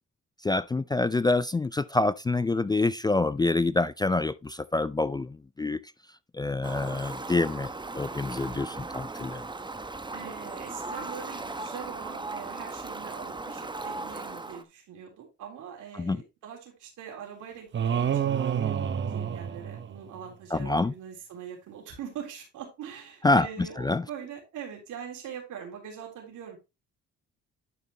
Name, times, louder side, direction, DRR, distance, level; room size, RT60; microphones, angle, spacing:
voice 1, 0.4-5.8 6.3-7.7 7.9-9.4 16.0-16.2 20.5-20.9 23.2-23.5 23.8-24.0, left 2 dB, 15° left, 0.3 m, -26 dB
Fowl, 6.6-14.6, right 3 dB, 15° right, 1.0 m, -37 dB
voice 2, 10.1-26.6, right 8 dB, 80° right, 3.5 m, -43 dB
sound 1, 17.7-20.2, right 8 dB, 40° right, 0.7 m, -28 dB
11.0 x 5.5 x 2.9 m
cardioid pair, 90°, 30 cm